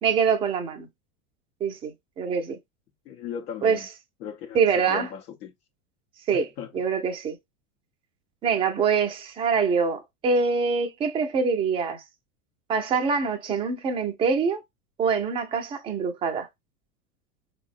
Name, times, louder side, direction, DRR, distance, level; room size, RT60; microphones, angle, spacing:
voice 1, 0.0-0.9 1.6-2.6 3.6-3.8 4.5-5.1 6.3-7.4 8.4-12.0 12.7-14.6 15.0-16.5, right 5 dB, 15° right, 0.3 m, -25 dB
voice 2, 3.1-3.9 4.2-5.5 6.3-6.7, left 8 dB, 80° left, 0.7 m, -37 dB
3.8 x 2.1 x 2.4 m
hypercardioid pair, 110°, 45 cm